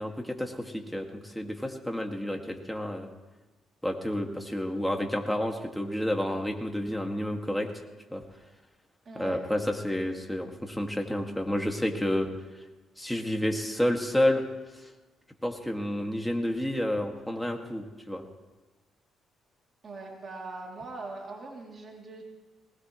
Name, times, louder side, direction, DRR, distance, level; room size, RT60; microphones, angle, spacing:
voice 1, 0.0-3.1 3.8-7.7 8.1-8.2 9.2-12.3 13.0-14.4 14.8-14.9 15.4-18.2, left 1 dB, 5° left, 3 dB, 2.0 m, -30 dB
voice 2, 9.0-9.4 19.8-22.2, right 3 dB, 45° right, -1 dB, 2.9 m, -41 dB
20.0 x 19.0 x 3.2 m, 1.2 s
cardioid pair, 90°, 0 cm